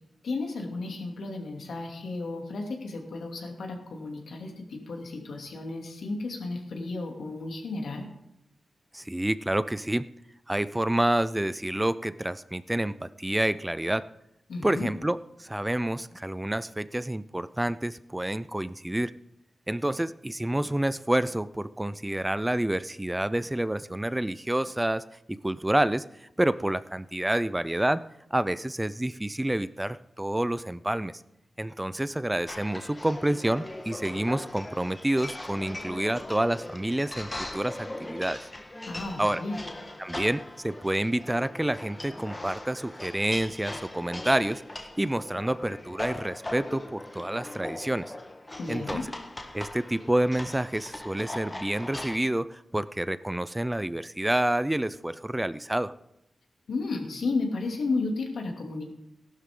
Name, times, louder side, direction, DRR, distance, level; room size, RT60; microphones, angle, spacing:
voice 1, 0.2-8.1 14.5-14.9 38.9-39.6 48.6-49.0 56.7-58.8, left 3 dB, 80° left, 1 dB, 2.7 m, -33 dB
voice 2, 8.9-10.1 10.5-14.0 14.6-19.1 19.7-28.0 28.3-31.1 31.6-38.5 39.2-39.4 40.0-48.1 48.7-49.0 49.5-55.9, right 1 dB, 10° right, 15 dB, 0.4 m, -28 dB
sound 1, 32.5-52.2, left 1 dB, 20° left, 1.4 m, -40 dB
15.0 x 12.0 x 3.7 m, 0.80 s
cardioid pair, 75°, 0 cm